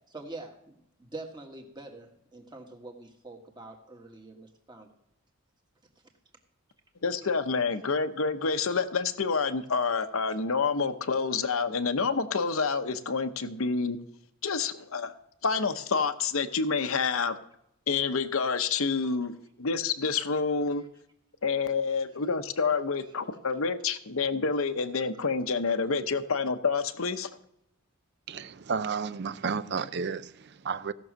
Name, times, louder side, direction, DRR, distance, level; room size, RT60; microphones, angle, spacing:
voice 1, 0.1-4.9 19.0-19.1, right 2 dB, 20° right, 1.6 m, -45 dB
voice 2, 7.0-14.0 14.4-15.1 15.4-17.4 17.9-20.8 21.4-27.3, left 4 dB, 70° left, 0.8 m, -28 dB
voice 3, 28.3-30.9, right 5 dB, 50° right, 0.5 m, -32 dB
16.5 x 6.3 x 6.3 m
head